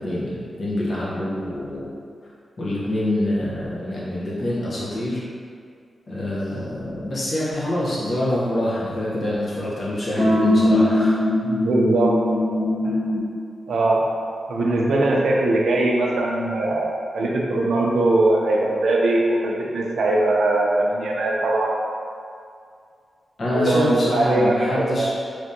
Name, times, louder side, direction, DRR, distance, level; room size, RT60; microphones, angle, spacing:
voice 1, 0.0-1.9 2.6-5.2 6.1-11.2 23.4-25.1, left 1 dB, 45° left, -7 dB, 0.8 m, -25 dB
sound 1, 10.2-13.3, left 1 dB, 5° left, 0.7 m, -20 dB
voice 2, 11.4-12.1 12.8-13.0 13.7-14.0 14.5-21.7 23.5-25.1, right 2 dB, 75° right, -2 dB, 0.4 m, -21 dB
3.4 x 2.6 x 2.7 m, 2.3 s
wide cardioid pair, 155°, 0 cm